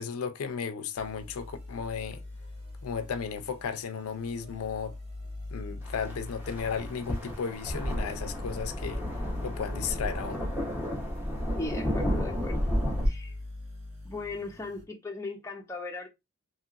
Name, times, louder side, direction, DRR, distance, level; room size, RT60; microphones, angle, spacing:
voice 1, 0.0-2.2 2.8-4.9 5.5-9.0 9.4-10.4, left 6 dB, 75° left, 0.4 m, -34 dB
sound 1, 1.0-14.8, left 2 dB, 75° right, 1.3 m, -43 dB
sound 2, 5.8-13.1, equal, 10° right, 0.8 m, -32 dB
voice 2, 11.5-12.7 13.0-13.4 14.0-16.1, left 3 dB, 15° left, 0.5 m, -37 dB
2.9 x 2.8 x 2.4 m
head